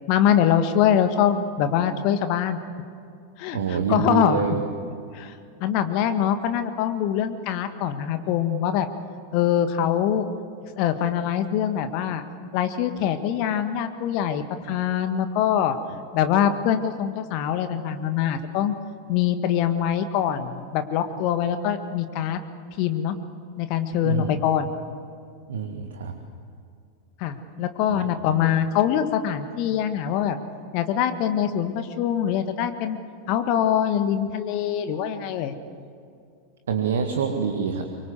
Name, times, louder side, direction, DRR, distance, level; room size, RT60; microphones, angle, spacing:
voice 1, 0.1-2.6 3.4-4.4 5.1-5.3 5.6-8.9 9.3-10.3 10.8-12.2 12.5-15.8 16.1-18.8 19.1-22.4 22.8-23.1 23.6-24.7 27.2-30.4 30.7-33.0 33.3-35.5, left 9 dB, 45° left, 9 dB, 1.5 m, -23 dB
voice 2, 3.5-4.6 24.0-24.5 25.5-26.1 27.9-28.4 36.7-37.8, right 6 dB, 65° right, 5 dB, 1.8 m, -26 dB
24.5 x 24.0 x 8.1 m, 2.4 s
figure-of-eight pair, 90°, 0 cm